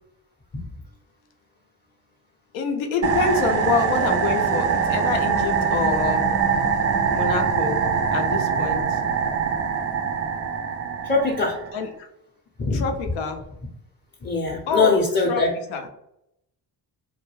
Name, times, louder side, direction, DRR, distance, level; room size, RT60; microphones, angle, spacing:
voice 1, 2.5-6.3 7.1-7.8 8.1-9.0 11.7-12.1 12.7-13.5 14.7-15.4 15.7-15.9, left 5 dB, 75° left, 5 dB, 0.6 m, -26 dB
sound 1, 3.0-11.8, right 6 dB, 35° right, 0.4 m, -23 dB
voice 2, 11.0-11.6 12.6-12.8 14.2-15.5, left 3 dB, 25° left, -5 dB, 0.7 m, -22 dB
2.3 x 2.2 x 3.0 m, 0.83 s
supercardioid pair, 55°, 48 cm